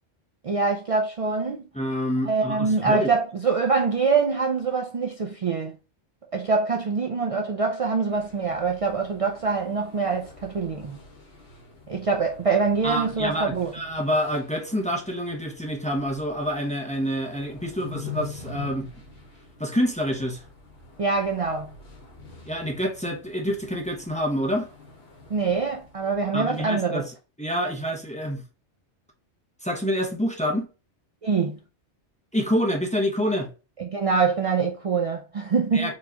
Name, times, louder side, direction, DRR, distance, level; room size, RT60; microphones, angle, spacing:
voice 1, 0.4-1.6 2.3-5.8 6.3-11.0 11.9-13.7 21.0-21.7 25.3-27.0 31.2-31.6 33.8-35.9, right 4 dB, 65° right, 0.3 m, -24 dB
voice 2, 1.7-3.1 12.8-18.9 19.6-20.4 22.5-24.7 26.3-28.4 29.6-30.7 32.3-33.5 35.7-35.9, equal, 10° left, 0.6 m, -27 dB
sound 1, 8.1-26.6, left 4 dB, 65° left, 1.4 m, -45 dB
4.4 x 3.0 x 2.8 m
omnidirectional pair, 1.2 m